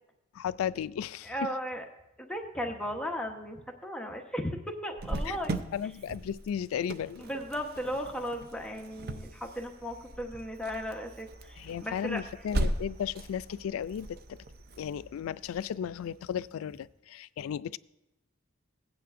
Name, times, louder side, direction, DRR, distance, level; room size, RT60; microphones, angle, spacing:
voice 1, 0.3-1.5 5.3-5.4 5.7-7.2 11.6-14.4 14.8-17.8, left 8 dB, 85° left, 18 dB, 0.3 m, -35 dB
voice 2, 1.2-1.8 2.2-5.6 7.2-12.2, equal, 5° left, 1 dB, 1.0 m, -36 dB
Cricket, 5.0-16.4, right 1 dB, 50° right, 0.6 m, -38 dB
16.5 x 9.4 x 2.6 m, 0.93 s
head